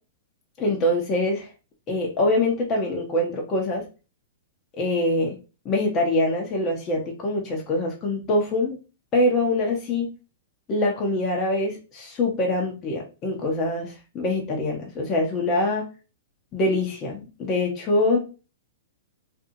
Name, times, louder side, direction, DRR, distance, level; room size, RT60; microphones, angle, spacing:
voice 1, 0.6-1.5 1.9-3.8 4.8-5.3 5.6-8.8 9.1-10.1 10.7-15.9 16.5-18.2, left 1 dB, 30° left, 0 dB, 0.8 m, -24 dB
2.6 x 2.5 x 2.6 m, 0.32 s
hypercardioid pair, 125°, 0 cm